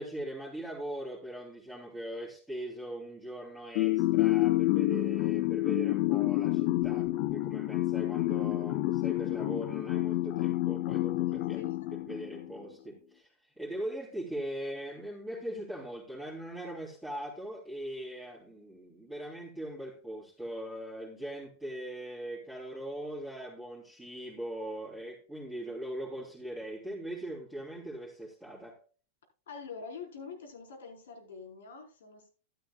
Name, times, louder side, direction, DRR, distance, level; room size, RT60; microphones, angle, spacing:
voice 1, 0.0-28.8, right 1 dB, ahead, 3.3 m, -40 dB
sound 1, 3.7-12.5, left 17 dB, 50° left, 0.5 m, -29 dB
voice 2, 11.3-11.9 29.5-32.3, left 5 dB, 90° left, 4.3 m, -45 dB
12.5 x 12.5 x 2.3 m
supercardioid pair, 140°, 0 cm